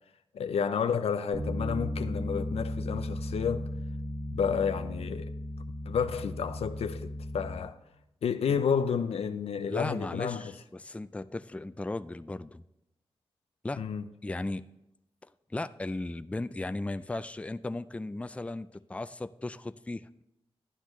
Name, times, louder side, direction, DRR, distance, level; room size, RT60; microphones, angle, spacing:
voice 1, 0.3-3.7 4.3-5.3 5.9-7.8 8.2-10.5 13.8-14.0, left 7 dB, 90° left, 0.5 m, -30 dB
Bass guitar, 1.3-7.6, left 1 dB, 50° right, 1.8 m, -35 dB
voice 2, 9.7-12.6 13.6-13.8 14.2-14.7 15.5-20.2, left 2 dB, 15° left, 0.4 m, -36 dB
12.0 x 9.7 x 3.1 m
cardioid pair, 55°, 10 cm